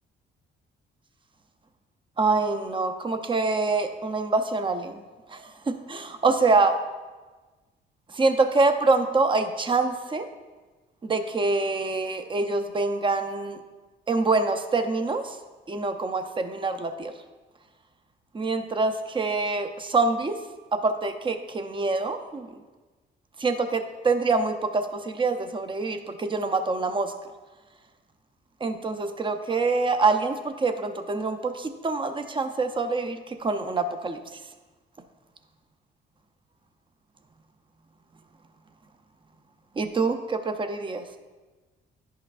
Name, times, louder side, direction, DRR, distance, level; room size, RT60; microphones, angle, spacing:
voice 1, 2.2-5.0 5.3-6.8 8.1-10.3 11.0-13.6 14.1-15.4 15.7-17.1 18.3-20.4 20.7-22.5 23.4-27.1 28.6-34.2 39.8-41.0, right 3 dB, 25° right, 8 dB, 0.6 m, -25 dB
10.5 x 5.5 x 2.5 m, 1.3 s
cardioid pair, 90°, 20 cm